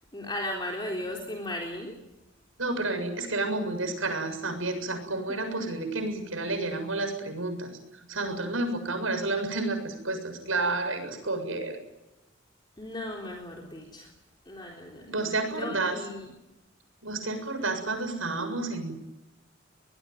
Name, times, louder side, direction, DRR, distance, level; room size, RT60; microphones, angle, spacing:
voice 1, 0.1-2.0 5.3-5.7 12.8-14.1 14.5-15.2 15.5-16.3, left 1 dB, 20° left, 0 dB, 3.7 m, -36 dB
voice 2, 2.6-11.8 15.1-16.0 17.0-18.9, right 2 dB, 90° right, 6 dB, 7.2 m, -30 dB
23.5 x 21.0 x 9.3 m, 0.95 s
head